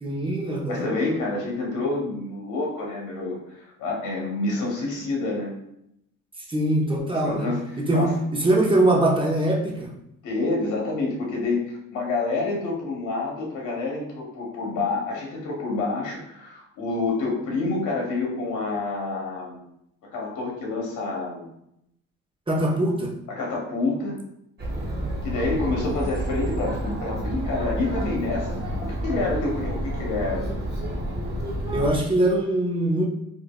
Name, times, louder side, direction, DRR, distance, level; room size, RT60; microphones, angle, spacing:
voice 1, 0.0-0.9 6.5-7.5 7.8-9.9 22.5-23.1 31.7-33.1, right 1 dB, 15° right, -1 dB, 0.8 m, -22 dB
voice 2, 0.7-5.5 7.2-8.1 10.2-19.6 20.1-21.5 23.3-24.2 25.2-30.5, left 3 dB, 80° left, -1 dB, 0.9 m, -28 dB
Chatter, 24.6-31.9, right 1 dB, 35° right, 1.1 m, -29 dB
4.6 x 2.5 x 2.2 m, 0.79 s
cardioid pair, 90°, 30 cm